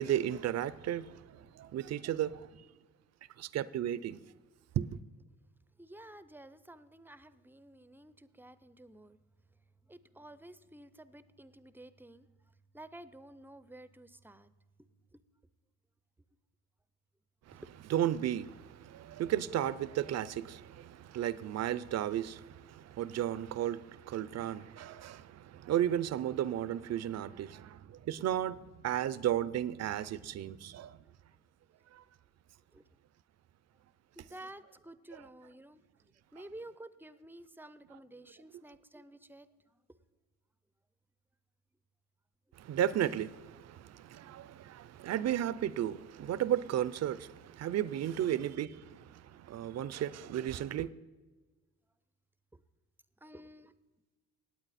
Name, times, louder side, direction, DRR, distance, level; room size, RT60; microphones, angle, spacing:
voice 1, 0.0-2.7 3.4-4.2 4.8-4.9 17.5-17.6 17.9-31.0 31.9-32.0 42.6-50.9, right 11 dB, 60° right, 0.6 m, -34 dB
voice 2, 5.8-9.2 9.8-14.5 14.8-15.2 17.5-17.6 32.7-32.9 34.1-39.8 52.5-52.6 53.2-53.7, right 1 dB, 5° right, 0.6 m, -52 dB
18.0 x 8.4 x 4.2 m
cardioid pair, 90°, 30 cm